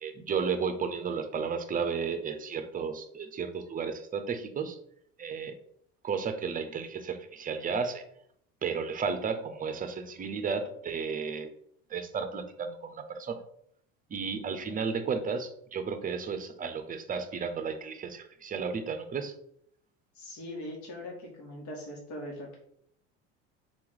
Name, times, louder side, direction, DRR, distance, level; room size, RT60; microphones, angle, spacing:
voice 1, 0.0-4.8 5.2-5.6 6.0-8.0 8.6-11.5 11.9-13.4 14.1-19.3, right 5 dB, 25° right, 9 dB, 0.6 m, -33 dB
voice 2, 20.2-22.6, left 1 dB, 60° left, -1 dB, 1.8 m, -41 dB
3.8 x 3.0 x 3.9 m, 0.69 s
supercardioid pair, 85°, 33 cm